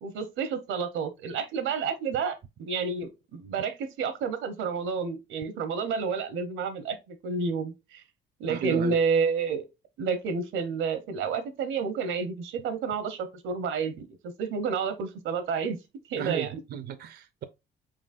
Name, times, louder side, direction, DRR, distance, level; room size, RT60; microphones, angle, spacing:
voice 1, 0.0-8.0 8.4-9.6 10.0-15.8 16.1-16.5, right 5 dB, 85° right, 0.8 m, -30 dB
voice 2, 8.5-9.0 16.2-17.4, right 9 dB, 55° right, 0.5 m, -34 dB
4.9 x 3.8 x 2.4 m
cardioid pair, 90°, 20 cm